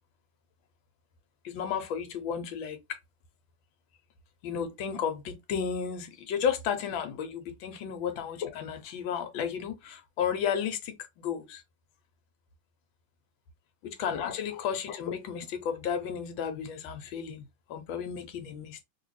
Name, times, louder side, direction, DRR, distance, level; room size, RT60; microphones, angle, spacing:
voice 1, 1.4-3.0 4.4-11.6 13.8-18.8, left 7 dB, 80° left, 1.5 m, -33 dB
3.2 x 2.7 x 3.0 m
omnidirectional pair, 2.1 m